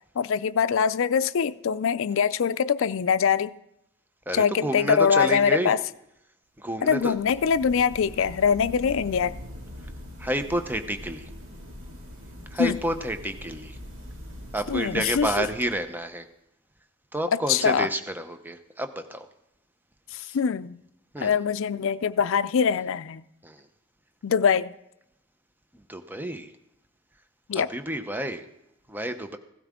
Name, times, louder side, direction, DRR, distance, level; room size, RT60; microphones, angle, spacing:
voice 1, 0.2-3.6 4.3-5.8 6.8-9.3 12.6-12.8 14.7-15.5 17.3-17.9 20.1-20.8 21.2-23.2 24.2-24.7 27.5-27.7, left 6 dB, 65° left, 0.4 m, -23 dB
voice 2, 4.3-5.8 6.6-7.2 10.2-11.3 12.5-13.8 14.5-16.3 17.1-19.3 20.2-20.4 21.1-21.3 23.4-23.6 25.9-26.5 27.5-28.4 28.9-29.4, right 1 dB, 10° right, 0.7 m, -30 dB
sound 1, 6.9-16.0, left 1 dB, 65° right, 2.3 m, -42 dB
16.5 x 13.0 x 3.7 m
head